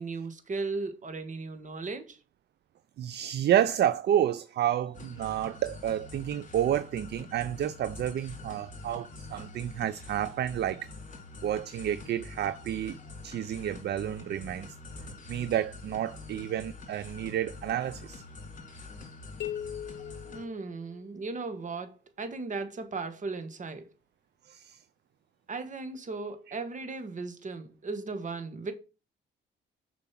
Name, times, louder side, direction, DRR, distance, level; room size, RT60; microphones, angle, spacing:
voice 1, 0.0-2.2 20.3-23.9 25.5-28.7, right 3 dB, 40° right, 1.7 m, -36 dB
voice 2, 3.0-10.9 11.4-13.0 13.2-14.8 15.3-18.2 24.4-24.8, right 11 dB, 55° right, 0.5 m, -30 dB
sound 1, 4.9-20.4, left 3 dB, 40° left, 2.9 m, -46 dB
sound 2, 19.4-21.3, left 10 dB, 65° left, 0.9 m, -39 dB
7.0 x 5.2 x 5.9 m
cardioid pair, 90°, 20 cm